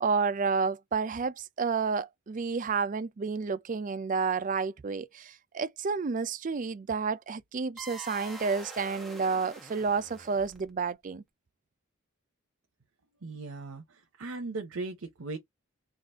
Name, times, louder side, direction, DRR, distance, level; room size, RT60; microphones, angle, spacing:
voice 1, 0.0-11.2, right 5 dB, 40° right, 0.4 m, -30 dB
sound 1, 7.8-10.9, right 2 dB, ahead, 0.8 m, -45 dB
voice 2, 13.2-15.4, right 3 dB, 85° right, 0.8 m, -38 dB
3.8 x 2.4 x 3.4 m
head